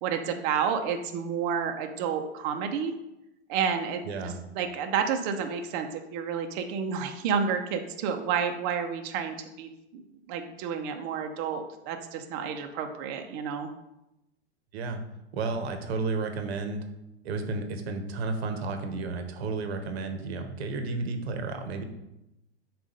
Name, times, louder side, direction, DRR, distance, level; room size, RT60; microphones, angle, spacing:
voice 1, 0.0-2.9 3.5-13.7, right 7 dB, 50° right, 5 dB, 0.8 m, -30 dB
voice 2, 4.0-4.4 14.7-15.0 15.3-16.8 17.2-21.8, right 3 dB, 70° right, 6 dB, 1.1 m, -32 dB
7.2 x 2.6 x 5.2 m, 0.91 s
hypercardioid pair, 105°, 33 cm